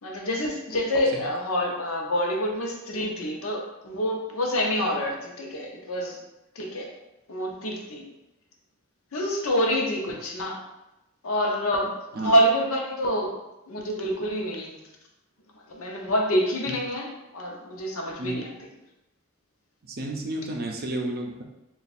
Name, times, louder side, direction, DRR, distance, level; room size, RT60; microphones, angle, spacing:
voice 1, 0.0-6.2 6.6-6.9 7.3-8.0 9.1-10.6 11.2-13.3 13.7-14.8 15.7-18.5, equal, 75° left, 0 dB, 0.7 m, -27 dB
voice 2, 19.8-21.4, right 1 dB, 45° right, 1 dB, 0.5 m, -31 dB
3.4 x 2.4 x 4.1 m, 0.93 s
head